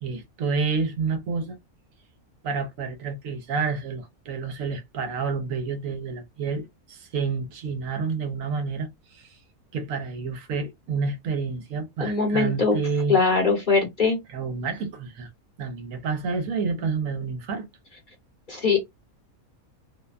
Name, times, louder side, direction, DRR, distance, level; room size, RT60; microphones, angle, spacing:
voice 1, 0.0-1.6 2.4-9.4 9.7-13.2 14.3-15.3 15.6-17.7, right 5 dB, 75° right, 1.0 m, -29 dB
voice 2, 12.0-12.8 13.1-14.2 18.5-18.8, left 4 dB, 40° left, 0.9 m, -21 dB
2.7 x 2.2 x 2.3 m
omnidirectional pair, 1.5 m